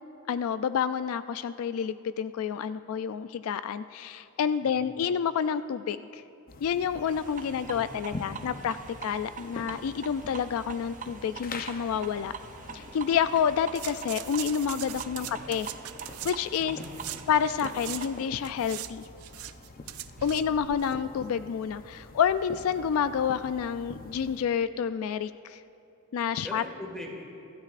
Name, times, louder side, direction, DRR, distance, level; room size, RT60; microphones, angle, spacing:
voice 1, 0.3-6.2 6.6-8.8 9.0-12.3 12.7-15.7 16.2-16.8 17.3-19.1 20.2-25.6 26.1-26.6, left 7 dB, 75° left, 13 dB, 0.3 m, -29 dB
voice 2, 4.6-5.0 7.5-8.5 15.0-15.4 16.6-17.4 20.2-20.6 26.4-27.3, left 1 dB, 5° left, -1 dB, 1.9 m, -44 dB
sound 1, 6.5-24.4, left 2 dB, 45° left, 0.7 m, -45 dB
sound 2, 7.1-18.3, right 5 dB, 40° right, 0.5 m, -44 dB
sound 3, 13.7-18.1 18.4-20.9 21.2-21.3, right 14 dB, 90° right, 0.4 m, -41 dB
24.0 x 13.0 x 2.5 m, 2.7 s
head